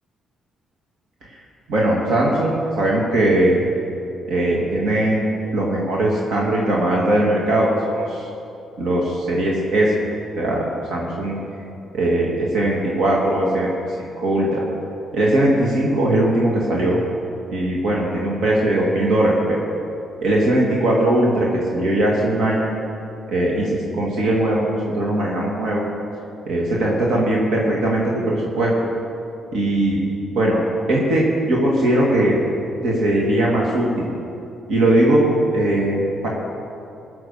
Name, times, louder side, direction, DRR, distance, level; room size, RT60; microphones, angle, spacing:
voice 1, 1.7-3.6 4.3-5.2 5.5-7.7 8.0-8.2 8.8-9.9 10.4-10.6 10.9-11.4 11.9-13.7 14.2-14.6 15.1-17.0 17.5-19.6 20.2-22.7 23.3-25.9 26.5-28.7 29.5-30.0 30.3-30.6 30.9-32.4 32.8-34.1 34.7-36.3, right 1 dB, 70° right, -3 dB, 2.1 m, -19 dB
17.0 x 6.0 x 6.6 m, 2.7 s
cardioid pair, 90°, 0 cm